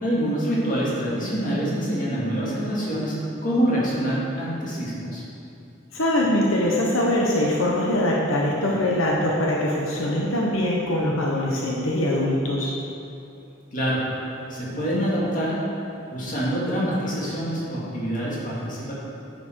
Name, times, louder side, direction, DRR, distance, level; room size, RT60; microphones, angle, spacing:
voice 1, 0.0-3.1 3.4-5.2 13.7-14.0 14.5-15.6 16.1-18.9, equal, 40° left, -6 dB, 2.2 m, -25 dB
voice 2, 5.9-12.7, left 1 dB, 85° left, -3 dB, 1.1 m, -22 dB
9.8 x 7.0 x 4.6 m, 2.7 s
head